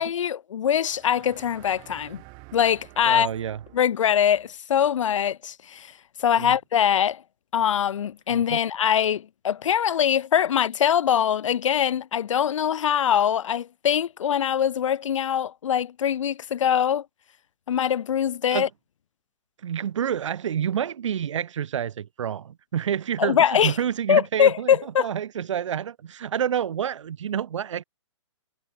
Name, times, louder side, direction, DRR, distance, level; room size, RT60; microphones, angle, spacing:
voice 1, 0.0-2.2 2.5-3.3 3.7-5.9 6.2-7.2 7.5-17.1 17.7-18.7 23.2-23.8 24.1-25.1, left 9 dB, 80° left, 0.4 m, -23 dB
sound 1, 0.8-4.5, right 35 dB, 30° right, 2.8 m, -49 dB
voice 2, 3.0-3.6 6.4-6.5 8.3-8.6 18.5-18.7 19.6-27.8, right 9 dB, 70° right, 0.7 m, -28 dB
hypercardioid pair, 145°, 16 cm